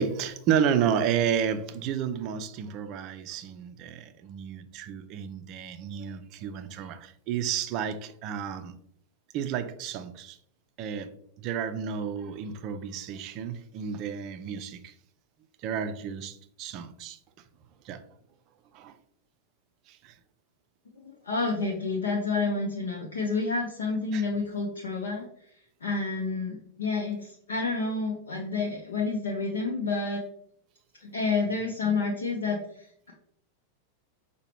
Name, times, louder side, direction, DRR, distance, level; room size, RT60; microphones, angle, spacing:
voice 1, 0.0-8.8 9.3-10.4 10.8-14.9 15.6-17.2 17.8-18.0 18.7-19.0 19.9-20.1 24.1-24.2, right 8 dB, 40° right, 0.4 m, -31 dB
voice 2, 21.0-25.3 25.8-30.2 31.0-33.1, left 3 dB, 70° left, 0.6 m, -29 dB
5.6 x 2.2 x 3.0 m
figure-of-eight pair, 90°, 0 cm